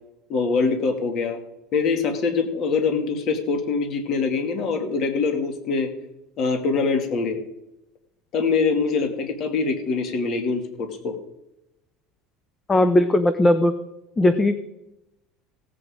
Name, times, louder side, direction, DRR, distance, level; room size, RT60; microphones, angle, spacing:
voice 1, 0.3-1.4 1.7-5.9 6.4-7.4 8.3-11.2, left 4 dB, 45° left, 6 dB, 2.1 m, -24 dB
voice 2, 12.7-13.7 14.2-14.6, left 1 dB, 15° left, 11 dB, 0.7 m, -18 dB
16.5 x 8.3 x 5.0 m, 0.89 s
cardioid pair, 140°, 0 cm